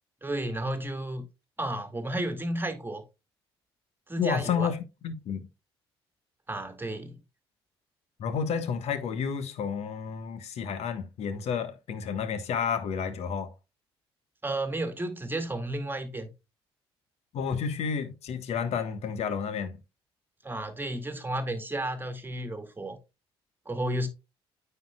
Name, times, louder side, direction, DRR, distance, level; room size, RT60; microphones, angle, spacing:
voice 1, 0.2-1.3 1.6-3.0 4.1-4.7 6.5-7.2 14.4-16.3 20.4-23.0 23.7-24.1, right 1 dB, 15° right, 2.0 m, -32 dB
voice 2, 4.2-5.5 8.2-13.5 17.3-19.8, left 7 dB, 55° left, 1.3 m, -31 dB
9.2 x 6.8 x 2.3 m
figure-of-eight pair, 50°, 13 cm